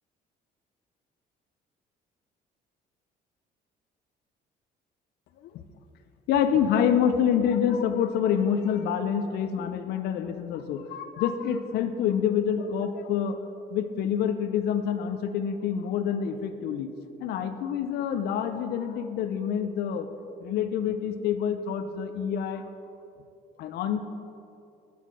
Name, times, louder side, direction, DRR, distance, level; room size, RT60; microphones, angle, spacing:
voice 1, 6.3-13.4 13.7-16.9 17.2-20.1 20.4-22.6 23.6-24.0, left 8 dB, 70° left, 8 dB, 0.5 m, -27 dB
8.4 x 4.0 x 6.0 m, 2.5 s
cardioid pair, 110°, 17 cm